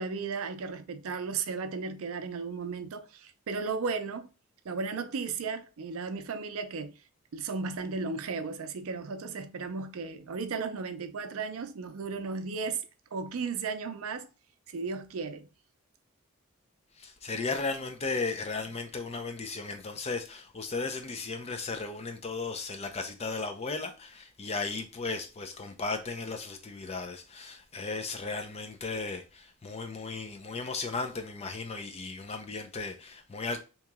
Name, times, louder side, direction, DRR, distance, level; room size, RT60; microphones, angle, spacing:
voice 1, 0.0-4.3 4.6-7.0 7.3-12.8 13.1-14.3 14.7-15.5, right 4 dB, 70° right, 0.4 m, -35 dB
voice 2, 17.0-33.6, left 3 dB, 30° left, 0.4 m, -35 dB
2.9 x 2.8 x 3.5 m
head